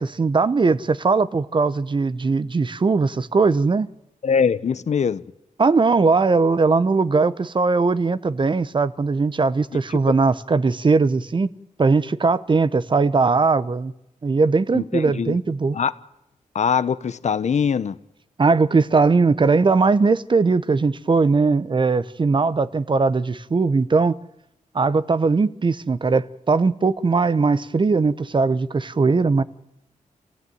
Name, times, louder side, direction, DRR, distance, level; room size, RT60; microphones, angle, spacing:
voice 1, 0.0-3.9 5.6-11.5 11.8-13.9 14.2-15.8 18.4-24.1 24.7-29.4, right 4 dB, 35° right, 0.9 m, -19 dB
voice 2, 4.2-5.2 14.7-15.4 15.7-15.9 16.5-18.0, left 6 dB, 60° left, 1.0 m, -22 dB
27.0 x 15.5 x 9.4 m
wide cardioid pair, 100°, 14 cm